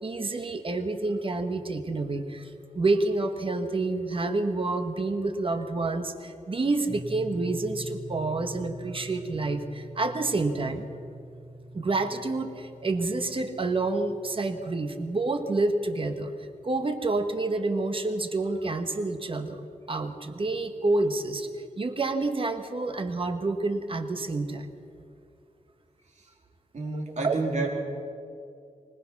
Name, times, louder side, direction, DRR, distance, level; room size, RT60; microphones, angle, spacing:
voice 1, 0.0-10.8 11.7-16.3 16.6-19.6 19.9-24.7 26.9-27.4, right 3 dB, 40° right, 7 dB, 1.4 m, -28 dB
sound 1, 6.9-17.0, right 1 dB, 15° right, 6.7 m, -44 dB
voice 2, 26.7-27.7, right 3 dB, 60° right, 0 dB, 3.7 m, -30 dB
25.0 x 18.5 x 6.1 m, 2.5 s
wide cardioid pair, 145°, 13 cm